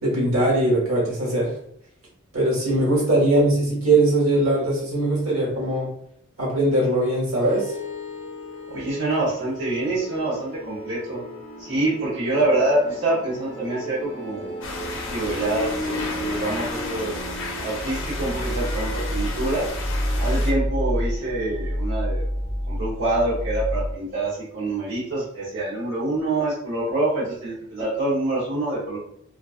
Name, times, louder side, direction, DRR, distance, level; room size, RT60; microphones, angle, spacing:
voice 1, 0.0-1.5 2.3-5.9 6.4-7.7, right 1 dB, 90° right, -4 dB, 1.2 m, -21 dB
sound 1, 7.4-24.0, equal, 20° left, 0.7 m, -30 dB
voice 2, 8.7-11.2 11.6-14.5 15.1-17.1 17.6-19.7 20.2-22.2 22.7-29.0, right 2 dB, 60° right, -8 dB, 0.7 m, -26 dB
sound 2, 14.6-20.5, left 2 dB, 65° left, 0.5 m, -33 dB
2.4 x 2.2 x 2.3 m, 0.71 s
head